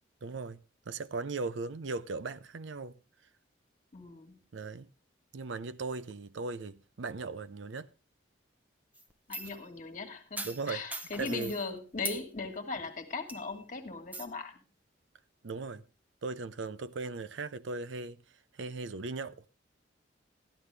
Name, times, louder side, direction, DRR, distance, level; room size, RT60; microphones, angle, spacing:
voice 1, 0.2-0.6 0.9-3.0 4.5-4.9 5.3-7.9 10.4-10.8 11.2-11.5 15.4-15.8 16.2-18.2 18.5-19.4, right 3 dB, 75° right, 0.5 m, -38 dB
voice 2, 3.9-4.4 9.3-14.6, left 4 dB, 40° left, 1.7 m, -39 dB
sound 1, 8.9-9.6 10.4-11.7 12.0-12.2 12.8-12.9 13.3-13.6 14.1-14.3, right 1 dB, 10° right, 0.8 m, -40 dB
13.5 x 11.5 x 3.3 m
head